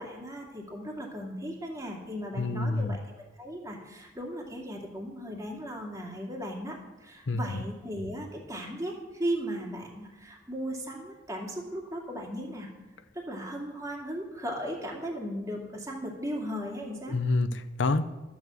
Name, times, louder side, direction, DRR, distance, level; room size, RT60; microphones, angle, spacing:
voice 1, 0.0-12.7 13.1-17.2, equal, 15° right, -1 dB, 2.3 m, -37 dB
voice 2, 2.4-3.0 7.3-7.6 17.1-18.0, left 3 dB, 75° left, 11 dB, 0.7 m, -28 dB
12.5 x 7.2 x 7.7 m, 1.1 s
head